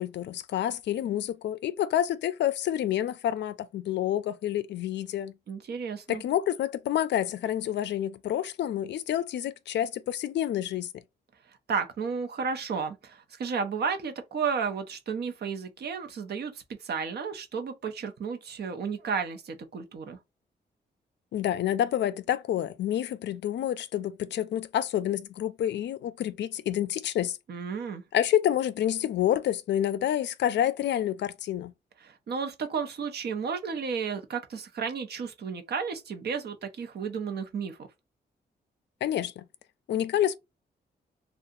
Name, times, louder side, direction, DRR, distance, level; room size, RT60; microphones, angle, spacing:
voice 1, 0.0-5.3 6.1-10.9 21.3-27.4 28.1-31.7 39.0-39.4 39.9-40.4, left 11 dB, 80° left, 0.4 m, -28 dB
voice 2, 5.5-6.2 11.7-20.2 27.5-28.0 32.0-37.8, right 6 dB, 65° right, 0.8 m, -33 dB
2.7 x 2.3 x 3.8 m
cardioid pair, 105°, 18 cm